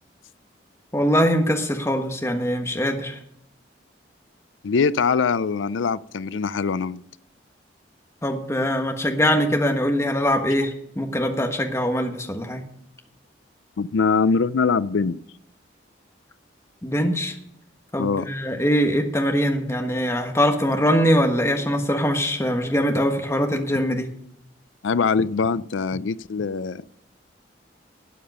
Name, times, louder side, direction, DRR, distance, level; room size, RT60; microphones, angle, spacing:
voice 1, 0.9-3.2 8.2-12.6 16.8-17.3 17.9-24.1, equal, 15° left, 3 dB, 1.4 m, -22 dB
voice 2, 4.6-7.0 13.8-15.2 18.0-18.3 24.8-26.8, left 5 dB, 85° left, 18 dB, 0.5 m, -22 dB
12.5 x 8.7 x 5.4 m, 0.75 s
head